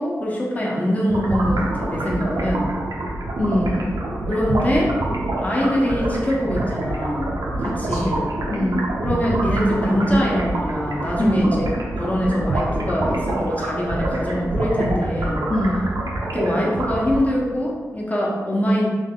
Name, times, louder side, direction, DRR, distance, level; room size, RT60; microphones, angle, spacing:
voice 1, 0.0-2.7 4.3-4.9 5.4-8.3 9.0-11.6 12.0-15.4 16.3-18.9, equal, 25° left, -4 dB, 1.1 m, -23 dB
sound 1, 1.1-17.5, right 2 dB, 75° right, 0.7 m, -26 dB
voice 2, 3.4-4.0 7.6-8.1 8.5-8.9 11.2-11.5 15.5-15.9, left 1 dB, 40° left, -7 dB, 0.8 m, -23 dB
3.4 x 3.3 x 3.7 m, 1.4 s
cardioid pair, 70°, 6 cm